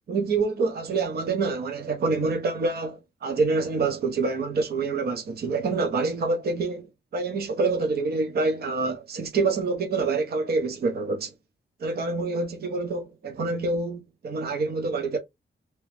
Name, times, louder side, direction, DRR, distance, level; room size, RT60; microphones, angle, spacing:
voice 1, 0.1-11.3 11.8-15.2, right 3 dB, 60° right, 0.9 m, -26 dB
3.0 x 3.0 x 3.3 m
wide cardioid pair, 115°, 18 cm